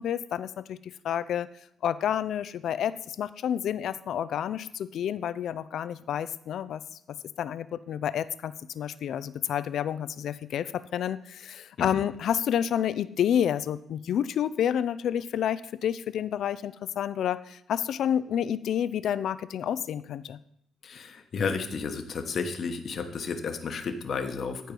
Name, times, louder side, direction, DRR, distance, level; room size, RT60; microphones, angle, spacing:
voice 1, 0.0-1.5 1.8-6.8 7.4-20.4, left 9 dB, 70° left, 15 dB, 0.5 m, -29 dB
voice 2, 20.8-24.7, left 5 dB, 55° left, 7 dB, 1.2 m, -32 dB
13.5 x 4.6 x 5.3 m, 0.71 s
cardioid pair, 90°, 0 cm